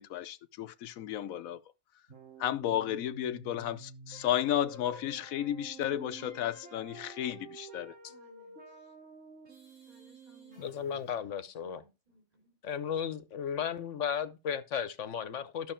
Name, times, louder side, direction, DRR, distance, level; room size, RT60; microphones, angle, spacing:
voice 1, 0.0-1.6 2.4-7.9, left 11 dB, 90° left, 1.1 m, -33 dB
sound 1, 2.1-11.2, right 4 dB, 65° right, 3.7 m, -51 dB
voice 2, 8.1-8.9 9.9-12.6, equal, 30° right, 3.6 m, -64 dB
voice 3, 10.6-11.8 12.6-15.7, left 8 dB, 65° left, 1.1 m, -35 dB
12.5 x 6.2 x 4.4 m
omnidirectional pair, 1.4 m